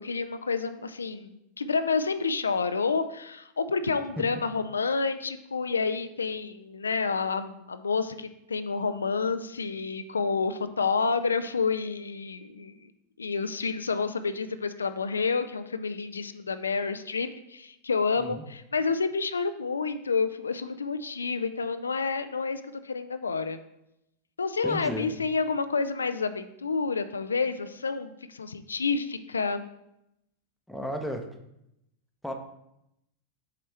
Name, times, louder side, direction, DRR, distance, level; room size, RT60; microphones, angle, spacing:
voice 1, 0.0-12.7 13.2-23.6 24.4-29.7, left 4 dB, 75° left, 11 dB, 0.3 m, -29 dB
voice 2, 24.6-25.1 30.7-31.2 32.2-32.3, equal, ahead, 4 dB, 0.8 m, -33 dB
7.5 x 4.2 x 3.3 m, 0.83 s
figure-of-eight pair, 90°, 0 cm